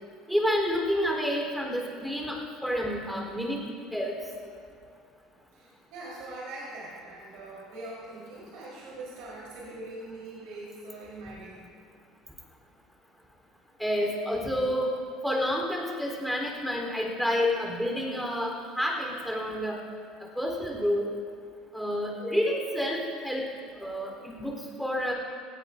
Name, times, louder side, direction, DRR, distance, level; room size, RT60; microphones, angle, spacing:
voice 1, 0.3-2.4 2.6-3.6 3.9-4.1 13.8-14.9 15.2-19.8 20.4-21.0 21.7-23.4 23.8-25.1, equal, ahead, -1 dB, 3.6 m, -29 dB
voice 2, 5.5-11.6, right 2 dB, 75° right, -6 dB, 3.9 m, -42 dB
20.0 x 16.5 x 2.6 m, 2.2 s
supercardioid pair, 105°, 0 cm